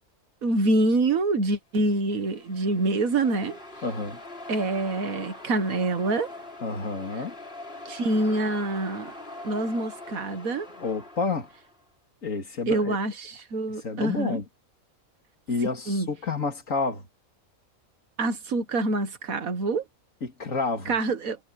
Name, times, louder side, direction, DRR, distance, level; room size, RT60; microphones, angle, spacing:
voice 1, 0.4-3.6 4.5-6.3 7.9-9.1 9.4-10.7 12.7-14.4 15.9-16.1 18.2-19.8 20.9-21.4, right 2 dB, 80° right, 2.0 m, -26 dB
sound 1, 2.0-11.8, left 2 dB, 45° left, 5.3 m, -43 dB
voice 2, 3.8-4.2 6.6-7.4 10.8-11.5 12.2-13.0 13.7-14.5 15.5-17.1 20.2-20.9, left 4 dB, 70° left, 2.9 m, -29 dB
omnidirectional pair, 1.4 m